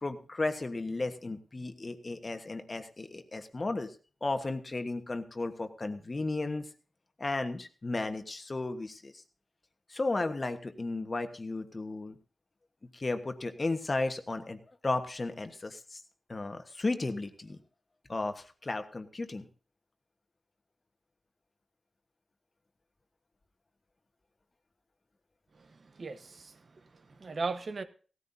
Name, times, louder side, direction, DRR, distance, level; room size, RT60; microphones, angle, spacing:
voice 1, 0.0-3.9 4.2-6.6 7.2-9.2 9.9-12.2 12.9-14.6 14.8-16.0 16.3-17.6 18.1-19.5, left 2 dB, 35° left, 1.3 m, -34 dB
voice 2, 25.5-27.8, right 3 dB, 55° right, 1.1 m, -38 dB
17.5 x 13.5 x 2.7 m
wide cardioid pair, 90°, 0 cm